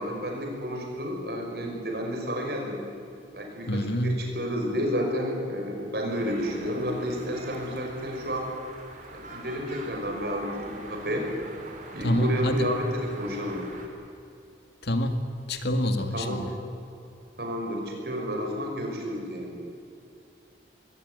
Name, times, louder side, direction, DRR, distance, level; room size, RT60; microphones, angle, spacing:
voice 1, 0.0-2.8 3.3-8.5 9.1-11.3 11.9-13.7 16.1-16.5 17.4-19.5, equal, 65° right, 1 dB, 5.7 m, -31 dB
voice 2, 3.7-4.2 12.0-12.7 14.8-15.2 15.5-16.5, left 1 dB, 70° left, 7 dB, 2.0 m, -26 dB
sound 1, 6.1-13.9, right 2 dB, 45° right, 3.5 m, -44 dB
21.5 x 18.0 x 9.5 m, 2.6 s
head